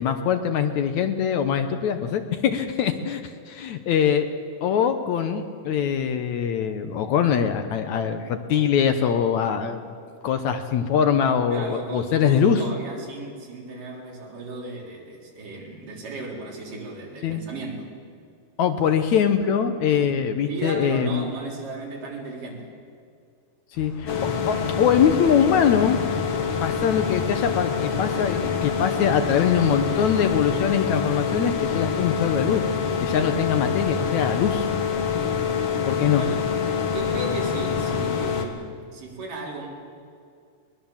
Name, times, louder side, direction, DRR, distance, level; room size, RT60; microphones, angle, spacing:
voice 1, 0.0-4.3 4.6-9.8 10.2-12.6 17.2-17.4 18.6-21.3 23.8-24.1 24.5-26.0 26.6-32.6 33.0-34.7 35.9-36.2, left 8 dB, 70° left, 8 dB, 2.0 m, -23 dB
voice 2, 11.5-17.9 20.0-22.7 36.1-36.4 36.8-39.7, right 2 dB, 70° right, -1 dB, 5.4 m, -35 dB
sound 1, 23.7-35.0, left 1 dB, 85° left, 6.5 m, -43 dB
sound 2, 24.1-38.5, left 6 dB, 50° left, 2.2 m, -26 dB
21.5 x 21.5 x 7.3 m, 2.3 s
omnidirectional pair, 3.9 m